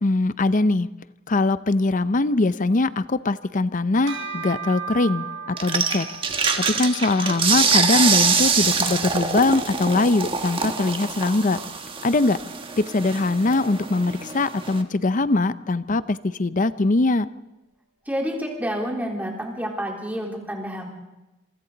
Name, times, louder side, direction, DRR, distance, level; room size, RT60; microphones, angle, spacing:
voice 1, 0.0-0.9 1.3-6.1 6.6-11.6 12.0-12.4 12.8-17.3, left 2 dB, 40° left, 14 dB, 0.6 m, -22 dB
Bell, 4.1-13.7, right 6 dB, 85° right, 3.7 m, -40 dB
sound 1, 5.6-14.8, right 5 dB, 30° right, 1.4 m, -25 dB
voice 2, 18.1-20.9, equal, 10° right, -1 dB, 3.9 m, -29 dB
27.0 x 24.0 x 4.0 m, 1.0 s
head